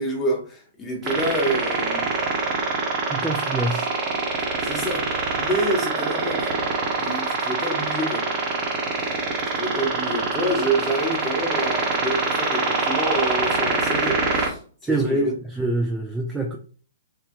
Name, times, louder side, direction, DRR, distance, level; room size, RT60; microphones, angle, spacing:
voice 1, 0.0-2.1 4.4-5.1 5.3-6.5 6.9-8.3 9.5-15.3, right 1 dB, 10° left, 1.0 m, -27 dB
sound 1, 1.0-14.5, right 3 dB, 30° right, 1.0 m, -25 dB
voice 2, 3.1-3.9 14.8-16.6, right 2 dB, 5° right, 0.4 m, -25 dB
3.6 x 2.2 x 4.3 m
hypercardioid pair, 150°, 0 cm